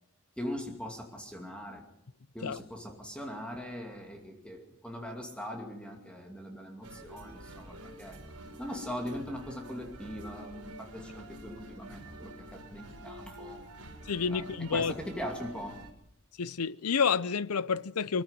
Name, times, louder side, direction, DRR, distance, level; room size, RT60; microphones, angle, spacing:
voice 1, 0.4-1.8 2.3-8.2 8.6-13.6 14.3-14.4 14.7-15.7, equal, 5° left, 2.5 m, -41 dB
sound 1, 6.8-15.9, right 1 dB, 90° right, 4.7 m, -47 dB
voice 2, 14.1-14.9 16.4-18.2, left 6 dB, 85° left, 0.7 m, -29 dB
23.5 x 15.0 x 8.1 m
head